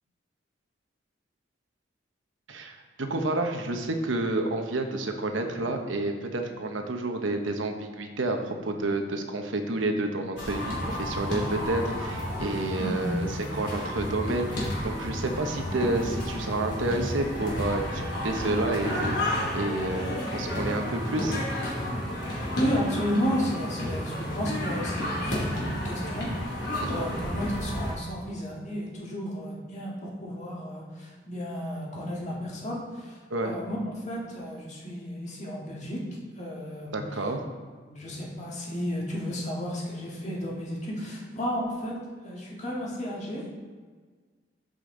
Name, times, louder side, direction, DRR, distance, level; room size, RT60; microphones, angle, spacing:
voice 1, 2.5-13.3 13.5-21.4 26.8-26.9 33.3-33.6 36.9-37.4, right 2 dB, 90° right, 5 dB, 0.9 m, -30 dB
sound 1, 10.4-27.9, equal, 70° left, 2.7 m, -31 dB
voice 2, 12.8-13.2 22.5-36.0 36.4-37.0 37.8-41.9 42.2-43.6, equal, 40° left, -4 dB, 1.9 m, -33 dB
13.0 x 5.2 x 3.8 m, 1.5 s
head